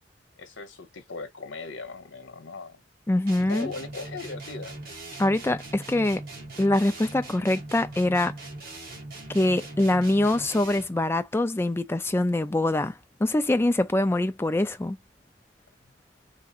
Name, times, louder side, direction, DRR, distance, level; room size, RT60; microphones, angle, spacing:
voice 1, 0.4-2.8 3.5-4.8, left 4 dB, 75° left, 1.0 m, -38 dB
voice 2, 3.1-3.7 5.2-6.2 6.6-8.3 9.3-12.9 13.2-15.0, left 1 dB, 15° left, 0.3 m, -24 dB
sound 1, 3.3-11.0, right 2 dB, 55° right, 1.4 m, -41 dB
3.6 x 2.7 x 2.5 m
head